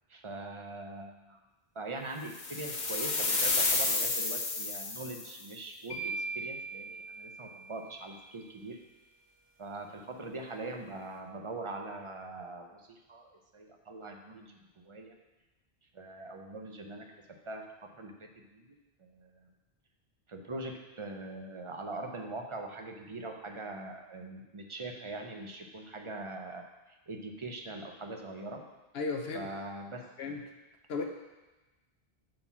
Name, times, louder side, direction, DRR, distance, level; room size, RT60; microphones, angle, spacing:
voice 1, 0.1-1.4 1.7-8.8 9.6-15.1 15.9-17.1 17.5-17.6 17.9-18.7 19.0-19.5 20.3-28.6 29.3-30.4, right 2 dB, 35° right, 3 dB, 0.7 m, -42 dB
sound 1, 2.3-5.4, left 3 dB, 50° left, 1.0 m, -30 dB
sound 2, 5.9-8.0, right 3 dB, 25° left, 1.4 m, -39 dB
voice 2, 28.9-29.5 30.2-30.4 30.9-31.0, left 4 dB, 80° left, 3 dB, 1.0 m, -34 dB
7.7 x 4.2 x 6.0 m, 1.1 s
omnidirectional pair, 1.0 m